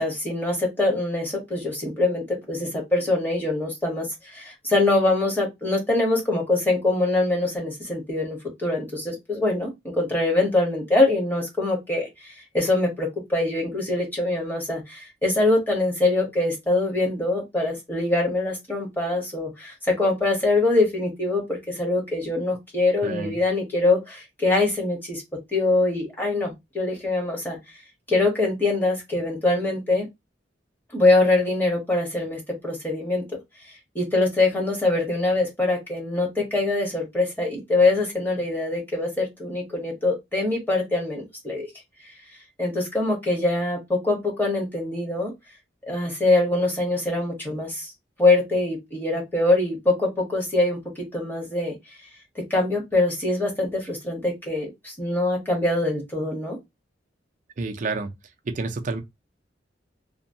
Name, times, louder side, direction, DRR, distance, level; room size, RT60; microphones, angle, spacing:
voice 1, 0.0-25.2 25.5-27.6 28.1-30.1 30.9-33.2 33.9-41.7 42.6-45.3 45.9-47.9 48.2-51.7 52.3-56.6, left 2 dB, 10° left, 1.2 m, -23 dB
voice 2, 23.0-23.4 57.6-58.1 58.4-59.0, right 3 dB, 40° right, 0.4 m, -29 dB
3.0 x 2.2 x 2.7 m
head